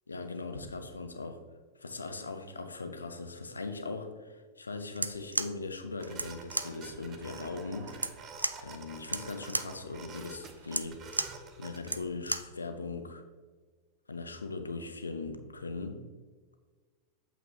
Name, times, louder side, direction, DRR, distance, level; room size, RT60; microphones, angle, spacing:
voice 1, 0.1-1.4 1.8-7.9 8.6-11.0 11.6-13.2 14.1-16.0, left 3 dB, 75° left, 7 dB, 0.8 m, -39 dB
sound 1, 4.9-12.6, right 2 dB, 85° right, 0.3 m, -36 dB
sound 2, 6.0-12.0, right 5 dB, 30° right, 0.9 m, -48 dB
8.4 x 7.0 x 2.8 m, 1.4 s
figure-of-eight pair, 90°, 0 cm